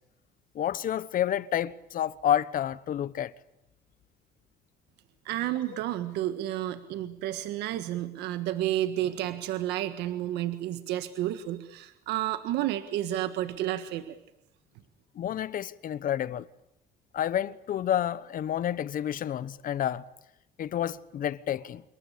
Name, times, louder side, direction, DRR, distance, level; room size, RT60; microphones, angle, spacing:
voice 1, 0.5-3.3 15.1-16.5 17.1-20.0 20.6-21.8, left 10 dB, 55° left, 1.1 m, -29 dB
voice 2, 5.2-14.2, right 13 dB, 85° right, 1.6 m, -31 dB
27.0 x 22.5 x 8.5 m
cardioid pair, 110°, 17 cm